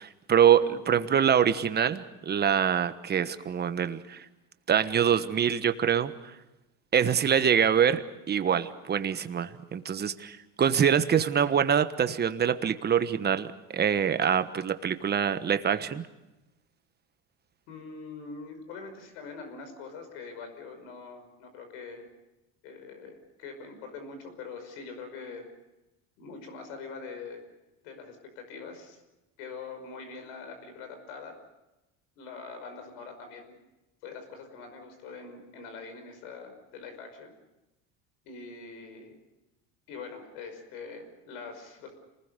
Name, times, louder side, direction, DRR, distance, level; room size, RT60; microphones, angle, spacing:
voice 1, 0.0-4.2 4.7-6.3 6.9-16.0, right 8 dB, 30° right, 11 dB, 1.2 m, -25 dB
voice 2, 17.7-22.1 22.6-25.5 26.2-27.4 27.8-29.0 29.4-31.3 32.2-33.6 34.0-37.3 38.2-39.1 39.9-41.9, left 4 dB, 85° left, 6 dB, 5.5 m, -43 dB
27.5 x 20.0 x 6.7 m, 0.99 s
cardioid pair, 125°, 36 cm